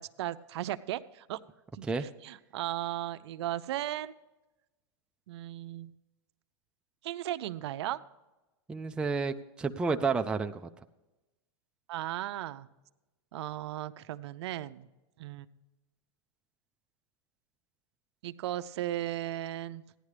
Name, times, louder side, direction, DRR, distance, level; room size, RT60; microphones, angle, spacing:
voice 1, 0.0-1.4 1.7-4.1 5.3-5.9 7.0-8.0 11.9-12.7 13.3-14.9 15.2-15.5 18.2-19.8, right 13 dB, 70° right, 13 dB, 0.6 m, -36 dB
voice 2, 8.7-10.7, right 4 dB, 5° right, 6 dB, 0.4 m, -30 dB
16.0 x 10.5 x 3.3 m, 1.1 s
supercardioid pair, 140°, 15 cm